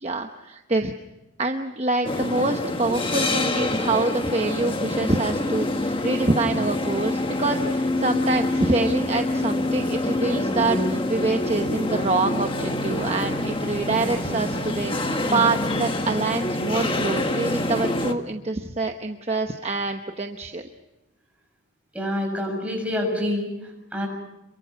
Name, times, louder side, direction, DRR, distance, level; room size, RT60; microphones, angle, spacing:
voice 1, 0.0-0.9 1.4-20.7, right 3 dB, 30° right, 5 dB, 1.0 m, -26 dB
sound 1, 2.0-18.1, left 1 dB, 25° left, 1.5 m, -26 dB
voice 2, 21.9-24.1, left 1 dB, 5° right, 0 dB, 7.0 m, -27 dB
28.5 x 23.0 x 5.9 m, 0.96 s
head